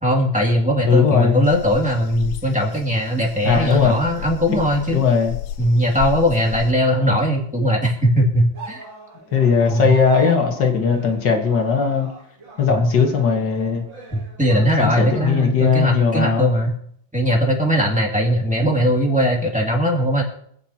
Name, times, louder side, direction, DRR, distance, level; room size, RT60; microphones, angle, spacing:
voice 1, 0.0-5.1 5.6-8.8 9.7-9.9 12.7-12.9 14.1-16.8 17.1-20.2, equal, 5° right, -1 dB, 2.2 m, -19 dB
voice 2, 0.9-1.4 3.4-4.0 4.9-5.3 9.3-12.1 12.6-13.8 14.8-16.5, left 6 dB, 65° left, 3 dB, 2.1 m, -18 dB
sound 1, 1.4-6.7, left 11 dB, 85° left, 1.5 m, -32 dB
sound 2, 8.5-15.5, right 4 dB, 70° right, 3.0 m, -40 dB
25.5 x 9.1 x 2.9 m, 0.68 s
omnidirectional pair, 2.1 m